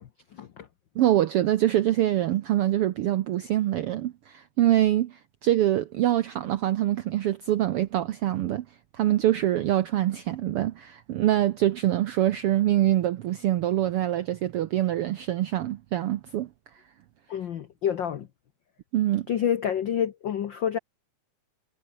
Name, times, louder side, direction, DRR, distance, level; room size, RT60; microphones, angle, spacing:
voice 1, 0.0-0.7 17.3-18.3 19.3-20.8, left 9 dB, 75° left, 1.0 m, -28 dB
voice 2, 0.9-8.6 8.9-16.5 18.9-19.3, right 13 dB, 80° right, 1.3 m, -24 dB
omnidirectional pair, 3.5 m